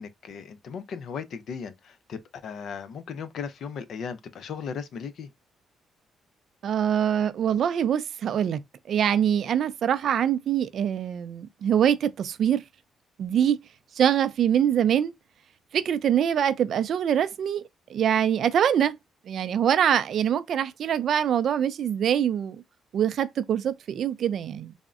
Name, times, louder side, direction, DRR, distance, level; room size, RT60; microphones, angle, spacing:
voice 1, 0.0-5.3, left 6 dB, 65° left, 0.5 m, -37 dB
voice 2, 6.6-8.6 8.9-12.6 13.2-13.6 14.0-15.1 15.7-17.6 17.9-18.9 19.3-22.6 22.9-24.7, right 9 dB, 65° right, 0.3 m, -24 dB
3.5 x 2.0 x 2.4 m
cardioid pair, 90°, 0 cm